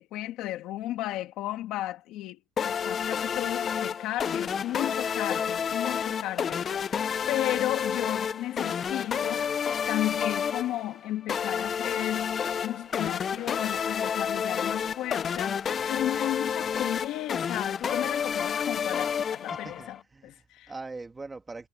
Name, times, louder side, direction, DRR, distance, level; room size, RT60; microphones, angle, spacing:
voice 1, 0.0-9.5 9.9-12.4 12.6-20.0 20.2-20.7, left 14 dB, 50° left, 2.3 m, -34 dB
sound 1, 2.6-20.0, left 7 dB, 25° left, 0.4 m, -30 dB
sound 2, 11.8-18.4, right 12 dB, 40° right, 4.2 m, -59 dB
voice 2, 19.5-21.7, right 3 dB, 10° right, 1.9 m, -42 dB
cardioid pair, 180°, 0 cm